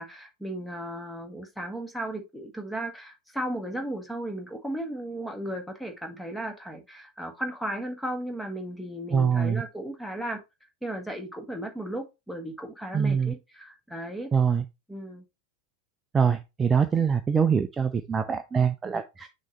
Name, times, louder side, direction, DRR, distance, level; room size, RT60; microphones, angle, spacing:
voice 1, 0.0-10.4 10.8-14.3 14.9-15.2, right 1 dB, 5° left, 1.5 m, -35 dB
voice 2, 9.1-9.6 12.9-13.3 14.3-14.6 16.1-19.3, right 6 dB, 15° right, 0.5 m, -24 dB
6.2 x 3.1 x 5.4 m
figure-of-eight pair, 90°, 0 cm